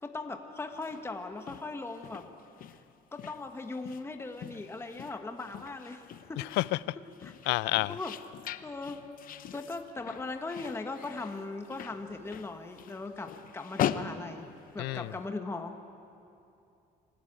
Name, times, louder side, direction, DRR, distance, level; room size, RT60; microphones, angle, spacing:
voice 1, 0.0-2.3 3.1-6.0 6.3-6.6 7.0-7.5 7.9-8.2 8.6-9.0 9.5-14.5 14.7-15.8, left 3 dB, 15° left, 5 dB, 1.2 m, -39 dB
sound 1, 0.7-15.2, left 10 dB, 55° left, 0.7 m, -41 dB
voice 2, 7.5-7.9 14.8-15.1, left 20 dB, 90° left, 20 dB, 0.4 m, -29 dB
25.0 x 13.0 x 8.8 m, 2.7 s
cardioid pair, 110°, 17 cm